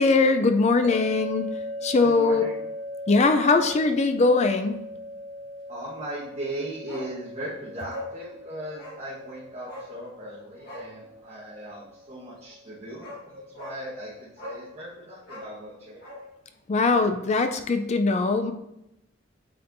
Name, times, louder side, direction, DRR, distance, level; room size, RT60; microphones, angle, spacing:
voice 1, 0.0-1.5 1.8-2.4 3.1-4.8 16.7-18.5, left 3 dB, 35° left, 8 dB, 0.4 m, -21 dB
sound 1, 0.8-14.0, left 1 dB, 80° right, 1.1 m, -40 dB
voice 2, 2.0-2.5 5.7-16.0, right 1 dB, 35° right, -9 dB, 1.4 m, -38 dB
Bark, 6.9-7.1 7.4-7.5 7.9-8.2 8.8-9.0 9.7-9.9 10.6-10.9 12.5-12.6 13.0-13.2 13.6-13.8 14.4-14.7 15.2-16.3 16.5-16.6, left 1 dB, 55° left, 1.4 m, -40 dB
8.7 x 4.3 x 2.6 m, 0.84 s
head